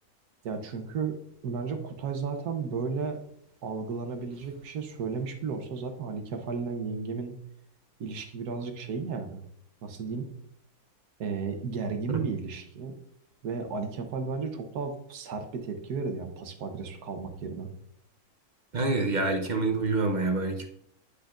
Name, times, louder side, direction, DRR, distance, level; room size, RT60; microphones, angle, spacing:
voice 1, 0.4-1.2 1.4-3.2 3.6-7.4 8.0-9.4 9.8-10.3 11.2-12.9 13.4-17.7, right 5 dB, 85° right, 6 dB, 1.4 m, -34 dB
voice 2, 18.7-20.7, right 3 dB, 45° right, 4 dB, 0.6 m, -27 dB
10.5 x 5.0 x 2.5 m, 0.68 s
omnidirectional pair, 1.6 m